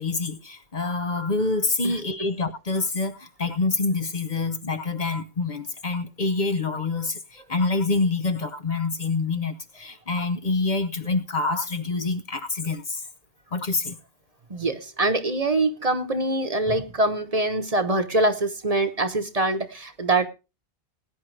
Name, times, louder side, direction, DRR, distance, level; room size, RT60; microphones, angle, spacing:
voice 1, 0.0-13.0 13.5-14.0, left 3 dB, 50° left, 1.0 m, -26 dB
voice 2, 14.5-20.3, right 2 dB, 35° right, 1.2 m, -24 dB
19.0 x 9.9 x 3.3 m
omnidirectional pair, 1.1 m